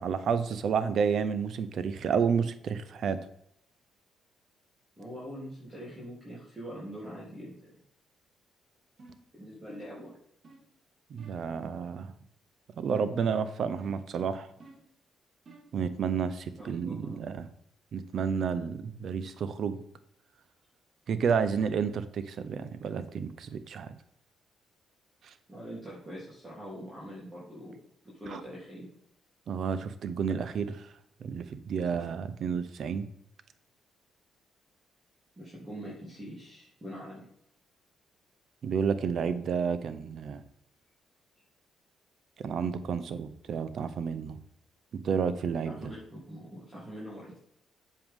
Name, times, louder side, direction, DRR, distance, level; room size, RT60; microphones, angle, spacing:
voice 1, 0.0-3.2 11.1-12.1 12.8-14.5 15.7-17.5 17.9-19.8 21.1-23.9 25.3-25.4 28.3-28.4 29.5-30.9 31.2-33.1 38.6-40.4 42.4-44.4 44.9-45.8, right 6 dB, 60° right, 12 dB, 0.7 m, -30 dB
voice 2, 5.0-7.7 9.3-10.2 16.6-17.2 25.5-27.8 28.0-28.9 31.8-32.0 35.4-37.2 45.6-47.4, equal, 20° right, -7 dB, 3.2 m, -43 dB
sound 1, 9.0-9.3 9.7-10.0 10.4-10.7 11.2-11.5 12.9-13.3 13.8-14.1 14.6-14.9 15.5-15.8, right 2 dB, 45° right, 1.7 m, -52 dB
7.9 x 6.9 x 3.7 m, 0.73 s
cardioid pair, 90°, 0 cm